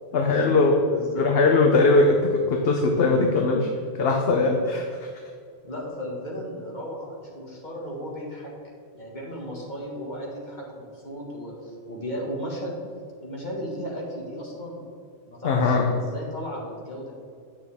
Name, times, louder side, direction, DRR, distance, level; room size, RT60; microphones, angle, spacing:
voice 1, 0.1-0.8 1.2-3.7 4.0-5.1 15.4-15.9, left 3 dB, 65° left, 1 dB, 1.0 m, -20 dB
voice 2, 0.9-1.3 5.6-8.5 8.9-12.8 13.2-14.8 15.2-17.1, equal, 45° left, -3 dB, 1.9 m, -35 dB
9.4 x 6.1 x 3.6 m, 2.3 s
omnidirectional pair, 1.1 m